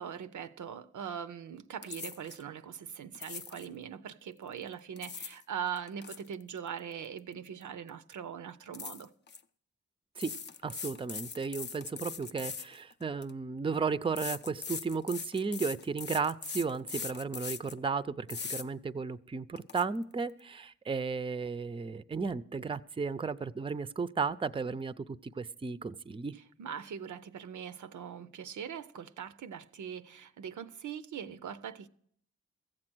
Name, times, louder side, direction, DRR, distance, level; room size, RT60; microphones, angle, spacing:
voice 1, 0.0-9.1 26.3-31.9, right 8 dB, 80° right, 0.5 m, -41 dB
sound 1, 1.8-2.4 3.1-3.7 4.7-5.4 5.8-7.6 7.9-8.1 8.7-9.4 10.2-13.3 14.2-17.8 18.3-18.6 19.1-19.2 19.6-19.8, left 5 dB, 35° left, 0.4 m, -41 dB
voice 2, 10.6-26.3, right 5 dB, 20° right, 0.4 m, -34 dB
14.5 x 7.6 x 6.1 m
cardioid pair, 40°, 30 cm